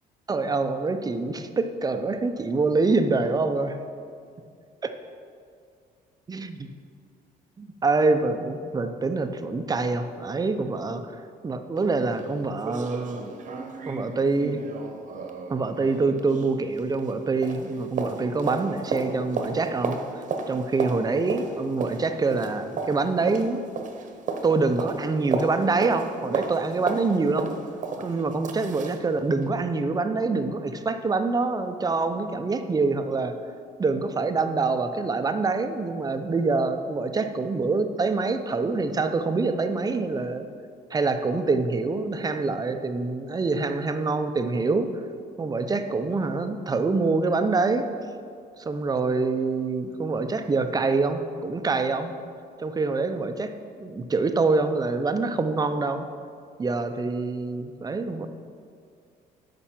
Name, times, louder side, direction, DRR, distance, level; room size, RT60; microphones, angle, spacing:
voice 1, 0.3-3.7 4.8-5.0 6.3-6.5 7.6-11.1 11.4-13.3 13.9-14.6 15.5-23.6 24.4-27.5 28.0-33.4 33.8-40.5 40.9-45.0 45.4-47.9 48.6-52.1 52.6-56.1 56.6-58.3, right 3 dB, 20° right, 8 dB, 0.6 m, -25 dB
sound 1, 11.8-11.9 12.2-12.3 12.6-17.2 17.4-29.0 29.4-29.5, right 4 dB, 50° right, 1.0 m, -33 dB
10.0 x 6.0 x 5.9 m, 2.3 s
cardioid pair, 110°, 17 cm